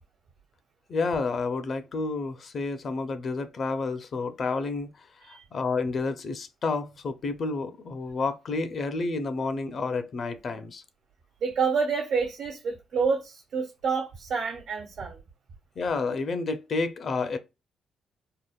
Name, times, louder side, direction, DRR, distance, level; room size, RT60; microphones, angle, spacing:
voice 1, 0.9-10.8 15.8-17.4, left 3 dB, 50° left, 0.5 m, -30 dB
voice 2, 11.4-15.2, right 5 dB, 80° right, 1.1 m, -28 dB
3.6 x 2.1 x 2.2 m
cardioid pair, 90°, 0 cm